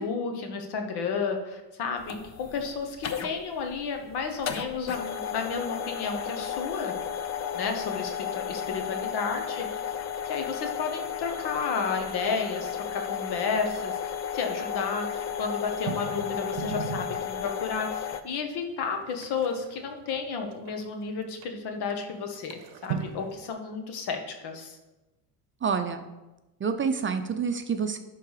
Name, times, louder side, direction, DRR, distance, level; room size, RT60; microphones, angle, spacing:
voice 1, 0.0-6.9 7.5-9.9 10.2-24.8, left 5 dB, 65° left, 4 dB, 1.5 m, -32 dB
sound 1, 2.0-18.2, left 8 dB, 40° left, 0.8 m, -33 dB
sound 2, 15.3-17.9 18.4-18.5 18.7-20.9 21.4-21.5 21.9-22.0 22.4-23.5, right 8 dB, 85° right, 0.7 m, -38 dB
voice 2, 25.6-26.0 26.6-28.0, right 6 dB, 30° right, 8 dB, 0.6 m, -27 dB
11.5 x 3.8 x 4.9 m, 1.1 s
supercardioid pair, 85°, 42 cm